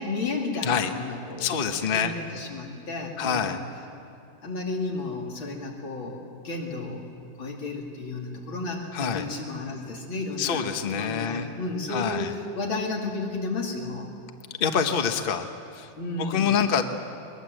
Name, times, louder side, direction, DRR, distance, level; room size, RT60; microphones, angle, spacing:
voice 1, 0.0-3.6 4.4-14.1 16.0-16.6, left 3 dB, 85° left, -1 dB, 3.5 m, -33 dB
voice 2, 1.4-2.1 3.2-3.6 8.9-9.2 10.4-11.5 11.9-12.3 14.6-15.5 15.8-15.9 16.2-16.8, left 7 dB, 35° left, 6 dB, 1.1 m, -26 dB
21.5 x 21.5 x 7.8 m, 2.5 s
omnidirectional pair, 2.1 m